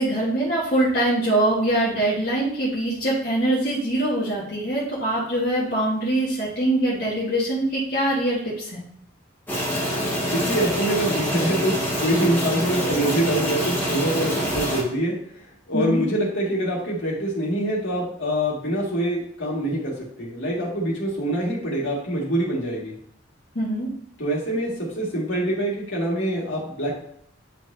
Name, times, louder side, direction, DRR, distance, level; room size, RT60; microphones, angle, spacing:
voice 1, 0.0-8.8 15.7-16.0 23.5-23.9, right 1 dB, 50° left, -7 dB, 1.6 m, -23 dB
sound 1, 9.5-14.8, equal, 10° left, 1.7 m, -25 dB
voice 2, 10.3-15.2 15.7-22.9 24.2-26.9, right 1 dB, 70° left, -4 dB, 2.2 m, -25 dB
9.4 x 4.5 x 2.8 m, 0.67 s
head